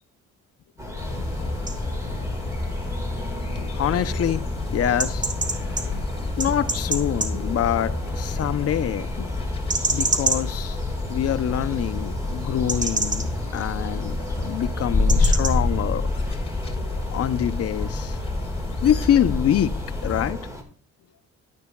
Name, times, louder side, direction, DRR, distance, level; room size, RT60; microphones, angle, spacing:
sound 1, 0.8-20.6, equal, 10° right, 1.7 m, -37 dB
sound 2, 1.0-20.3, left 3 dB, 20° left, 2.8 m, -28 dB
sound 3, 1.1-15.6, right 2 dB, 25° right, 1.3 m, -32 dB
voice 1, 3.6-5.3 5.9-6.0 6.4-9.3 9.9-10.8 11.1-13.3 13.5-16.0 17.1-18.2 18.8-19.8 20.0-20.4, left 10 dB, 50° left, 0.6 m, -25 dB
11.5 x 9.4 x 2.3 m
cardioid pair, 90°, 30 cm